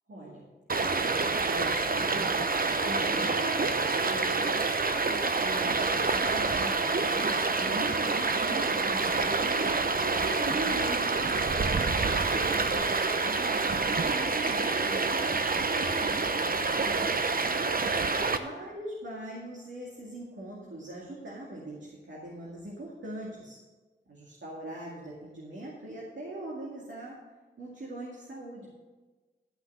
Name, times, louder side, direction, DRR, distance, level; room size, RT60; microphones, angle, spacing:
voice 1, 0.1-0.5 0.8-4.5 5.0-9.5 10.0-17.2 18.1-23.6 24.1-27.2 27.6-28.7, right 1 dB, 70° right, -4 dB, 2.2 m, -41 dB
Stream, 0.7-18.4, right 4 dB, 50° right, 0.8 m, -27 dB
12.0 x 5.8 x 6.7 m, 1.3 s
cardioid pair, 45°, 20 cm